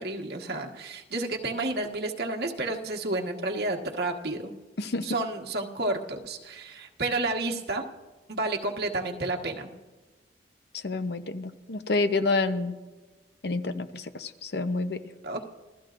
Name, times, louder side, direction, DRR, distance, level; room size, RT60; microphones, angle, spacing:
voice 1, 0.0-4.5 5.0-7.8 8.3-9.7 15.2-15.4, right 2 dB, 60° right, 1 dB, 1.5 m, -31 dB
voice 2, 10.8-12.8 13.4-15.0, left 3 dB, 65° left, 10 dB, 0.8 m, -28 dB
26.5 x 16.5 x 2.6 m, 1.3 s
head